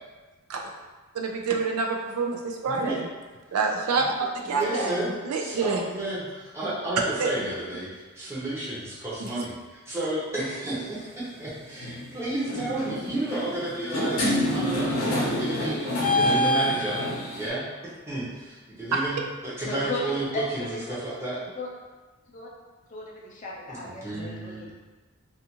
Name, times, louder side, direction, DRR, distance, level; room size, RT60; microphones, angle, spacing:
voice 1, 1.1-3.1 3.5-5.0 5.2-5.8 7.2-7.3 9.2-9.4, right 4 dB, 85° right, 1 dB, 0.4 m, -27 dB
voice 2, 2.7-3.0 4.4-5.1 5.4-14.2 14.5-17.0 17.3-17.6 18.1-21.4 23.7-24.7, right 2 dB, 10° right, -9 dB, 0.7 m, -32 dB
sound 1, 10.6-10.8 11.8-12.0 12.4-17.5, left 1 dB, 75° left, 0.7 m, -27 dB
voice 3, 19.6-20.0 20.3-21.0 21.6-21.7 22.3-22.5 22.9-24.7, left 2 dB, 35° left, -3 dB, 0.4 m, -35 dB
2.4 x 2.4 x 2.9 m, 1.3 s
head